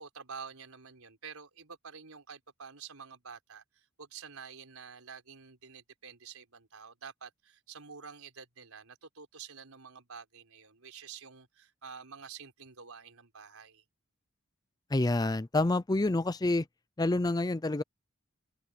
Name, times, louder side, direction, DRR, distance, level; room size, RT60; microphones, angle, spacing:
voice 1, 0.0-13.8, right 6 dB, 90° right, 4.4 m, -48 dB
voice 2, 14.9-16.7 17.0-17.8, left 2 dB, 20° left, 0.5 m, -28 dB
head